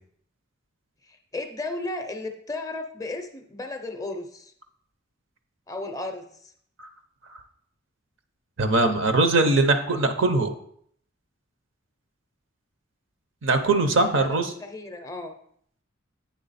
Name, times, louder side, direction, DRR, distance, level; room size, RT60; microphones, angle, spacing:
voice 1, 1.1-4.5 5.7-6.5 14.0-15.3, left 2 dB, 15° left, 5 dB, 0.5 m, -35 dB
voice 2, 8.6-10.5 13.4-14.5, right 2 dB, 60° right, 7 dB, 0.7 m, -21 dB
8.3 x 3.5 x 4.1 m, 0.65 s
head